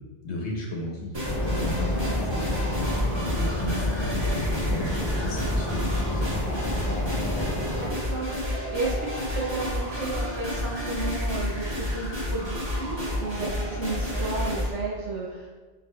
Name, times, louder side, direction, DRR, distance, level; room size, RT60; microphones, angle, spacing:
voice 1, 0.0-2.9 3.2-6.4, left 1 dB, 75° left, -2 dB, 1.1 m, -35 dB
sound 1, 1.1-14.7, left 1 dB, 25° right, 0.9 m, -30 dB
Maastricht Industrial Estate with Nature at Night, 1.2-7.9, left 1 dB, 35° left, 0.3 m, -29 dB
voice 2, 7.7-15.5, right 3 dB, 85° right, -6 dB, 1.6 m, -33 dB
4.5 x 4.1 x 2.2 m, 1.3 s
omnidirectional pair, 1.2 m